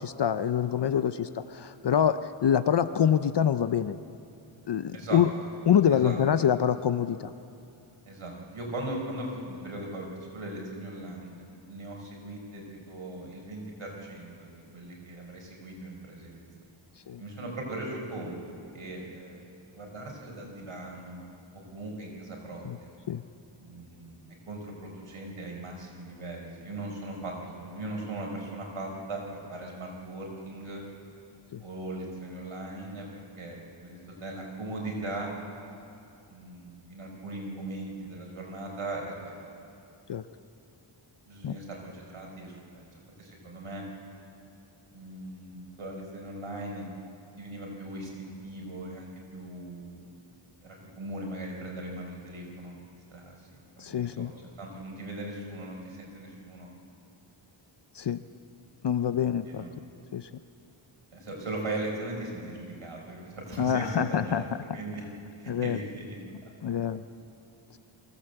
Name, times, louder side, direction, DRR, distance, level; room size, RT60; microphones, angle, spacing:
voice 1, 0.0-4.0 4.7-5.3 5.7-7.3 17.1-17.2 22.6-22.8 23.1-23.2 31.5-31.6 40.1-40.2 41.4-41.6 53.8-54.3 57.9-58.2 58.8-59.6 60.1-60.3 63.6-64.4 65.5-65.8 66.6-67.0, left 8 dB, 55° left, 12 dB, 0.6 m, -26 dB
voice 2, 5.9-6.2 8.0-16.5 17.2-21.2 21.7-22.9 23.6-24.2 24.5-30.8 31.6-35.3 36.3-39.5 41.3-42.8 43.2-43.8 44.9-46.9 47.4-50.0 50.6-52.8 53.1-56.7 59.5-59.7 61.1-65.0 65.4-66.2 66.4-66.5, right 2 dB, 75° right, 0 dB, 4.7 m, -39 dB
24.0 x 16.0 x 7.9 m, 2.6 s
wide cardioid pair, 130°, 50 cm